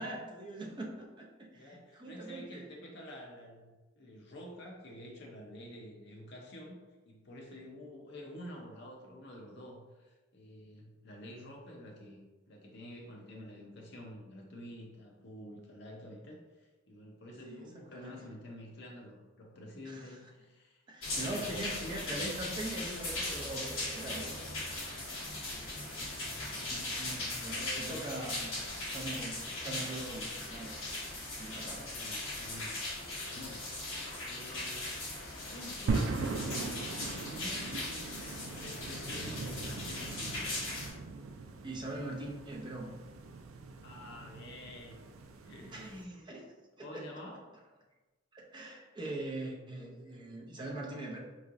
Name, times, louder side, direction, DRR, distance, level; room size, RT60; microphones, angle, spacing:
voice 1, 0.0-2.7 17.4-18.1 19.9-20.0 20.9-24.3 26.6-28.6 28.9-30.8 31.3-31.9 41.6-42.9 45.7-46.5 46.8-47.1 48.3-51.2, right 1 dB, 20° right, -2 dB, 0.6 m, -42 dB
voice 2, 1.5-6.8 7.1-12.2 12.5-20.8 21.2-21.6 25.5-26.2 26.9-28.1 31.5-32.8 33.3-33.7 34.2-35.0 35.5-38.1 38.4-40.6 43.8-45.0 45.4-46.2 46.8-47.4, left 1 dB, 55° left, 0 dB, 0.7 m, -49 dB
sound 1, 21.0-40.9, left 2 dB, 75° left, 1.4 m, -39 dB
sound 2, 35.9-46.0, right 3 dB, 80° right, 0.4 m, -40 dB
3.7 x 3.1 x 2.5 m, 1.2 s
head